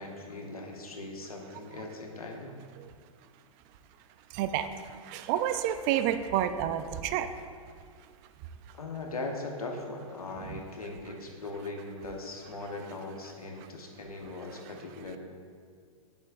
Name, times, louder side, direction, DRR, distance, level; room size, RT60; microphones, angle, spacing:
voice 1, 0.0-2.6 8.7-15.2, left 2 dB, 85° left, 1 dB, 1.1 m, -39 dB
voice 2, 4.3-4.7 5.0-7.3 10.4-10.6 13.6-13.7, right 11 dB, 35° right, 10 dB, 0.4 m, -29 dB
7.9 x 7.0 x 2.5 m, 2.1 s
hypercardioid pair, 110°, 18 cm